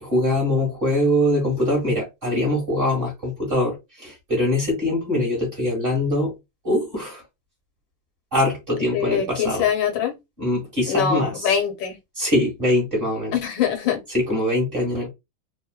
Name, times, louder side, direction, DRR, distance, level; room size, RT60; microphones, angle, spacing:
voice 1, 0.0-6.3 6.6-7.2 8.3-9.6 10.4-11.3 12.2-13.3 14.1-15.1, left 1 dB, 30° right, 1.3 m, -23 dB
voice 2, 8.9-10.1 10.9-12.0 13.3-14.0, left 8 dB, 80° left, 1.6 m, -23 dB
3.3 x 2.2 x 2.3 m
omnidirectional pair, 2.0 m